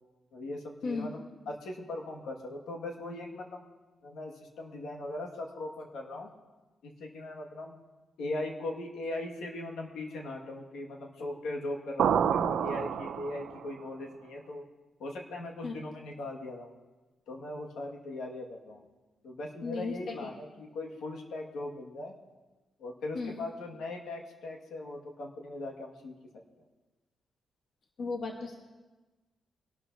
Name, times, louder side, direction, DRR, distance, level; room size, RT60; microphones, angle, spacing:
voice 1, 0.3-3.6 4.0-6.3 6.8-7.8 8.2-14.6 15.0-16.7 17.3-18.8 19.2-22.1 22.8-26.1, left 2 dB, 85° left, 0 dB, 1.9 m, -39 dB
sound 1, 12.0-13.7, right 8 dB, 75° right, 0.6 m, -28 dB
voice 2, 19.6-20.3 23.1-23.4 28.0-28.6, left 4 dB, 55° left, 2 dB, 1.2 m, -35 dB
23.5 x 12.5 x 2.8 m, 1.2 s
cardioid pair, 130°, 0 cm